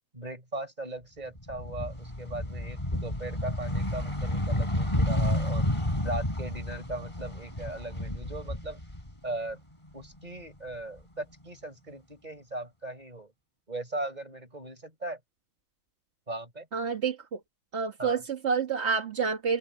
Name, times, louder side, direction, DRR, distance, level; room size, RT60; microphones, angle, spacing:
voice 1, 0.1-5.7 6.0-8.8 9.2-9.6 9.9-13.3 13.7-15.2 16.3-16.7 18.0-18.2, right 2 dB, 15° right, 5.4 m, -38 dB
sound 1, 1.4-9.5 9.8-11.0, left 1 dB, 10° left, 4.2 m, -31 dB
voice 2, 16.7-17.4 17.7-19.6, right 5 dB, 35° right, 1.0 m, -28 dB
omnidirectional pair, 3.4 m